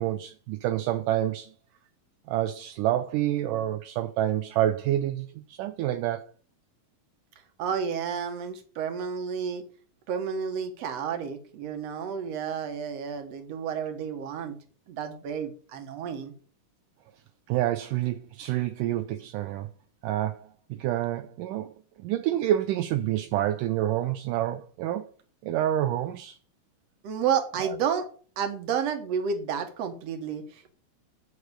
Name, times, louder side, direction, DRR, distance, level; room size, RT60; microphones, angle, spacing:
voice 1, 0.0-1.5 2.3-6.3 17.5-19.7 20.0-21.7 22.0-25.1 25.4-26.4 27.6-27.8, right 13 dB, 80° right, 2.1 m, -28 dB
voice 2, 7.6-9.7 10.1-14.6 14.9-16.3 27.0-28.1 28.4-30.7, right 7 dB, 55° right, 2.3 m, -31 dB
11.0 x 6.6 x 4.9 m
omnidirectional pair, 3.9 m